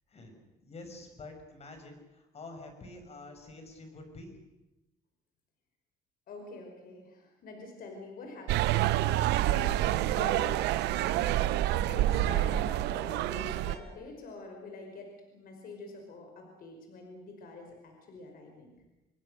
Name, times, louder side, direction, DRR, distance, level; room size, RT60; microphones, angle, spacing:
voice 1, 0.1-4.4, left 2 dB, 40° left, 5 dB, 6.4 m, -48 dB
voice 2, 6.3-18.7, left 2 dB, 60° left, 3 dB, 5.3 m, -46 dB
sound 1, 8.5-13.8, right 14 dB, 85° right, 0.9 m, -28 dB
Vehicle horn car horn honking, 13.3-13.9, right 6 dB, 45° right, 5.8 m, -52 dB
27.0 x 21.5 x 6.7 m, 1.0 s
cardioid pair, 110°, 17 cm